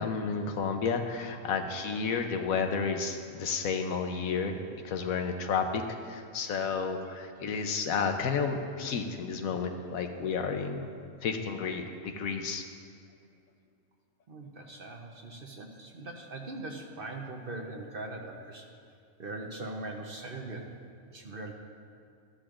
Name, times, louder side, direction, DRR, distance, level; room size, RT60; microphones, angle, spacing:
voice 1, 0.0-10.9 11.2-12.6, left 5 dB, 80° left, 5 dB, 1.2 m, -31 dB
voice 2, 14.3-18.7 19.2-20.8 21.1-21.5, right 2 dB, 45° right, 2 dB, 0.9 m, -41 dB
13.5 x 11.5 x 2.5 m, 2.4 s
omnidirectional pair, 1.4 m